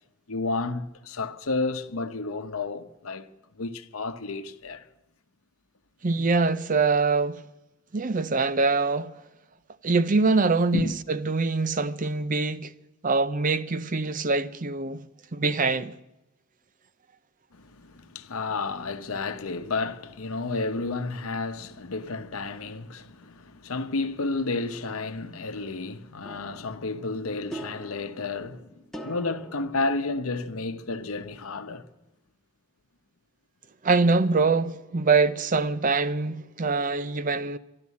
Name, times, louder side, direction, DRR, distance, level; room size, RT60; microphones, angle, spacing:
voice 1, 0.3-3.3 3.6-4.8 10.7-10.9 17.5-28.7 29.0-31.8, left 3 dB, 85° left, 0.9 m, -31 dB
voice 2, 6.0-7.4 7.9-9.1 9.8-12.7 13.0-15.0 15.3-15.9 33.8-37.6, right 4 dB, 40° right, 0.6 m, -24 dB
sound 1, 26.2-30.8, right 1 dB, ahead, 1.2 m, -44 dB
12.5 x 12.0 x 8.4 m
head